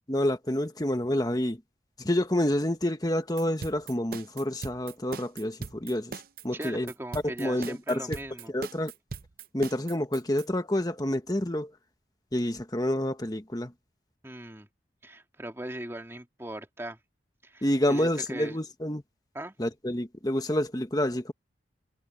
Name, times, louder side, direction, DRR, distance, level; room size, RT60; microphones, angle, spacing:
voice 1, 0.1-1.6 2.0-6.9 7.2-8.2 8.5-8.9 9.5-11.7 12.3-13.7 17.6-19.0 19.6-21.3, left 1 dB, 20° left, 1.4 m, -28 dB
sound 1, 3.4-10.5, right 4 dB, 50° right, 0.6 m, -40 dB
voice 2, 6.5-8.5 14.2-14.7 15.0-17.0 17.4-18.6 19.3-19.5, right 1 dB, 15° right, 2.3 m, -39 dB
head